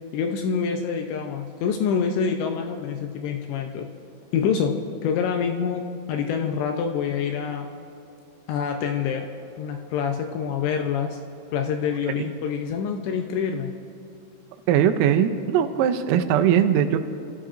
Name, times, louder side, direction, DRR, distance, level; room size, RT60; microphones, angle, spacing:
voice 1, 0.1-3.9 4.3-7.7 8.5-9.3 9.6-11.2 11.5-13.7, left 6 dB, 80° left, 4 dB, 2.6 m, -26 dB
voice 2, 14.7-17.0, right 9 dB, 90° right, 8 dB, 3.4 m, -20 dB
28.0 x 13.5 x 2.6 m, 2.5 s
omnidirectional pair, 5.9 m